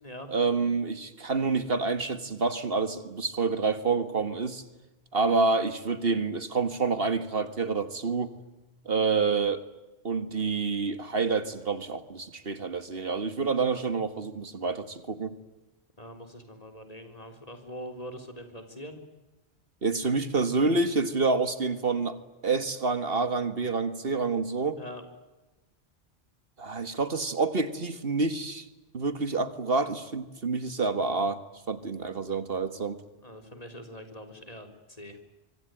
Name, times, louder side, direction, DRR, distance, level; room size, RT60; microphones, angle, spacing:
voice 1, 0.3-4.6 5.1-8.3 8.9-9.6 10.0-15.4 19.8-22.2 22.4-24.8 26.6-28.6 28.9-31.4 31.7-33.0, right 4 dB, 60° right, 12 dB, 1.9 m, -28 dB
voice 2, 16.0-19.0 24.8-25.0 33.2-35.3, equal, 35° left, 7 dB, 3.7 m, -43 dB
25.0 x 24.5 x 9.2 m, 1.1 s
omnidirectional pair, 1.1 m